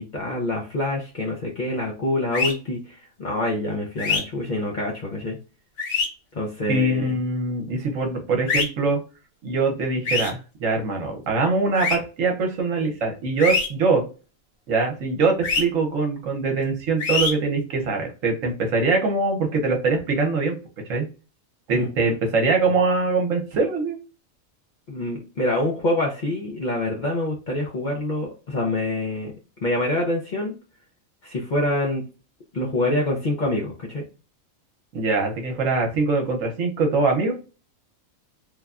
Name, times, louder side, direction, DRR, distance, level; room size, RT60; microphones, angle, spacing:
voice 1, 0.0-5.4 6.3-7.1 21.7-22.1 24.9-29.3 29.6-30.5 31.2-32.0 32.5-34.1, left 1 dB, 50° left, -2 dB, 0.5 m, -26 dB
sound 1, 2.3-2.5 4.0-4.2 5.8-6.1 8.5-8.6 10.0-10.3 11.7-11.9 13.4-13.7 15.4-15.6 17.0-17.3, left 4 dB, 75° left, 1.4 m, -23 dB
voice 2, 6.7-9.0 9.4-14.0 14.7-20.6 20.9-21.1 21.7-24.0 34.9-37.3, right 3 dB, 70° right, 2 dB, 1.2 m, -23 dB
3.2 x 2.2 x 2.4 m, 0.33 s
omnidirectional pair, 1.4 m